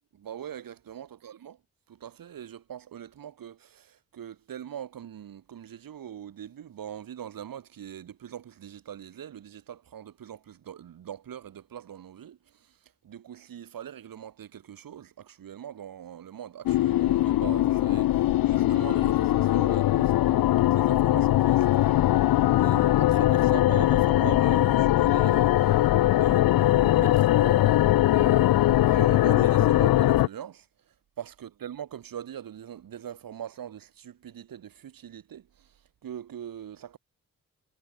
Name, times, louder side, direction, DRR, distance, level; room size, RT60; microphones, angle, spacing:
voice 1, 0.1-1.6 1.9-12.8 13.0-22.1 22.5-25.9 26.1-30.7 31.2-35.7 36.0-37.0, right 9 dB, 75° right, 7.2 m, -42 dB
sound 1, 16.7-30.3, left 14 dB, 85° left, 2.1 m, -21 dB
supercardioid pair, 40°, 34 cm